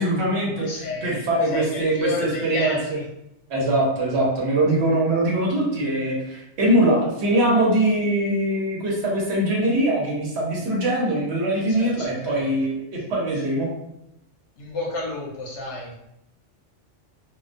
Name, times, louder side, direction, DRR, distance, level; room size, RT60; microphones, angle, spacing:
voice 1, 0.0-3.0 3.5-13.7, right 1 dB, 65° right, -3 dB, 0.9 m, -22 dB
voice 2, 0.5-3.0 11.7-12.6 14.6-15.9, left 2 dB, 75° left, -3 dB, 1.0 m, -32 dB
2.4 x 2.2 x 2.5 m, 0.84 s
omnidirectional pair, 1.2 m